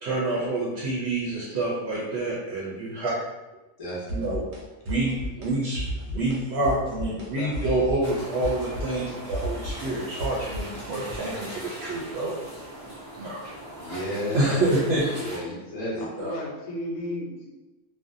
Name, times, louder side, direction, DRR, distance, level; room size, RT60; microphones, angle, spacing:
voice 1, 0.0-3.1 4.1-4.4 4.9-12.3 13.2-13.4 14.3-15.1 15.9-16.3, right 2 dB, 65° right, -6 dB, 0.7 m, -27 dB
voice 2, 3.8-4.2 13.7-14.7 15.2-16.0, equal, 35° left, -7 dB, 0.6 m, -32 dB
sound 1, 4.1-4.6 4.9-5.5 5.7-6.4 6.6-7.3 7.5-11.2, equal, 90° right, 1.0 m, -33 dB
voice 3, 7.1-7.9 16.0-17.5, left 1 dB, 75° left, -2 dB, 1.0 m, -35 dB
sound 2, 8.0-15.4, right 1 dB, 20° right, 0.4 m, -40 dB
2.5 x 2.1 x 2.5 m, 1.1 s
omnidirectional pair, 1.3 m